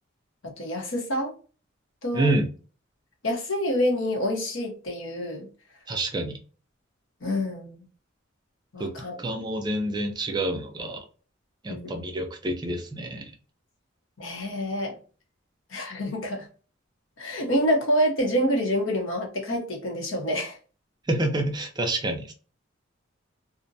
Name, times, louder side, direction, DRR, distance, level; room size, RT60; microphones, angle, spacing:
voice 1, 0.4-1.3 2.0-2.4 3.2-5.5 7.2-7.7 8.7-9.2 11.7-11.9 14.2-15.0 15.7-16.5 17.2-20.6, equal, 75° left, 1 dB, 0.9 m, -27 dB
voice 2, 2.1-2.5 5.9-6.4 8.8-8.9 9.2-11.0 11.6-13.3 21.1-22.3, right 1 dB, 20° right, 4 dB, 0.4 m, -28 dB
2.5 x 2.1 x 2.6 m, 0.38 s
head